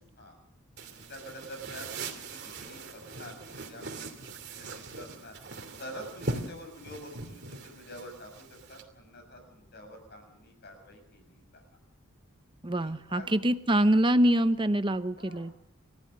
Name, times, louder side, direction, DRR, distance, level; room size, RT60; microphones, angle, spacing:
voice 1, 0.8-4.3 4.6-5.4 5.8-11.8 12.7-13.3 15.1-15.5, equal, 50° left, 5 dB, 6.9 m, -47 dB
sound 1, 0.8-8.8, right 3 dB, 50° right, 2.8 m, -41 dB
voice 2, 12.6-15.5, right 1 dB, 20° right, 11 dB, 0.8 m, -25 dB
29.5 x 14.0 x 6.6 m, 0.79 s
head